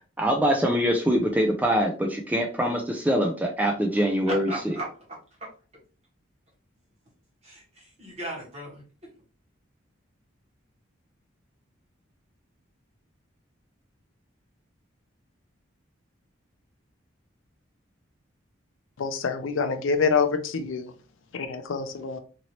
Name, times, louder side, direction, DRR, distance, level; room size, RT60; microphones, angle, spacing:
voice 1, 0.2-4.8, equal, 10° right, 1 dB, 0.3 m, -24 dB
voice 2, 4.3-4.9 7.4-8.8, right 1 dB, 30° right, -4 dB, 1.4 m, -36 dB
voice 3, 19.0-20.9 21.3-22.2, left 5 dB, 75° left, 8 dB, 0.4 m, -26 dB
2.9 x 2.7 x 2.9 m, 0.37 s
head